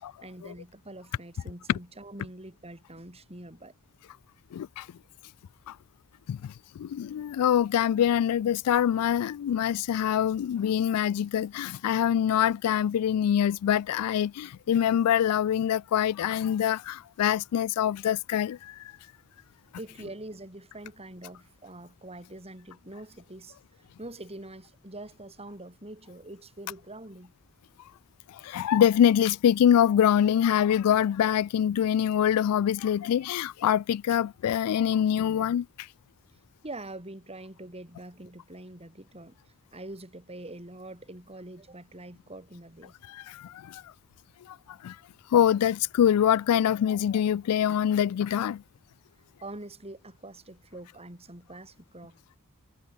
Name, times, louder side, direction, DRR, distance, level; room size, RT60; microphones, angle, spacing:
voice 1, 0.2-3.7 19.8-23.6 24.0-27.3 36.6-43.0 49.4-52.4, right 2 dB, 25° right, 5.1 m, -44 dB
voice 2, 4.5-4.9 5.7-5.8 6.3-18.9 28.3-35.9 43.1-43.8 44.5-44.6 44.8-45.0 45.3-48.6, left 9 dB, 85° left, 0.3 m, -25 dB
head